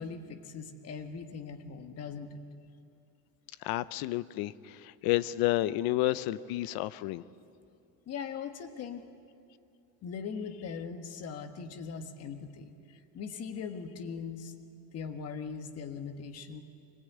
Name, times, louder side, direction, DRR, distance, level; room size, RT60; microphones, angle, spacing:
voice 1, 0.0-2.4 8.1-9.1 10.0-12.7 13.1-14.5 14.9-16.6, left 6 dB, 40° left, 8 dB, 1.5 m, -40 dB
voice 2, 3.6-4.5 4.8-7.2, left 16 dB, 65° left, 17 dB, 0.8 m, -30 dB
24.5 x 19.5 x 9.3 m, 2.6 s
cardioid pair, 170°, 39 cm